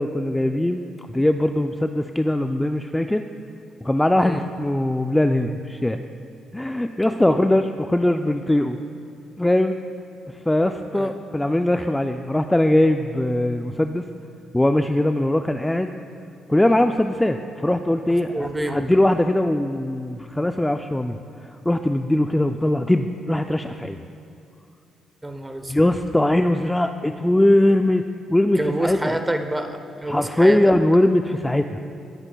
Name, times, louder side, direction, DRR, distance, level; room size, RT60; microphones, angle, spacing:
voice 1, 0.0-3.2 3.8-6.0 6.5-8.8 9.4-9.8 10.3-14.1 14.5-15.9 16.5-24.0 25.7-28.0 28.3-29.2 30.1-31.8, left 1 dB, 10° left, 7 dB, 0.3 m, -21 dB
voice 2, 18.3-18.8 25.2-25.9 28.6-30.6, right 1 dB, 15° right, 7 dB, 0.7 m, -27 dB
17.0 x 8.7 x 2.3 m, 2.7 s
cardioid pair, 90°, 0 cm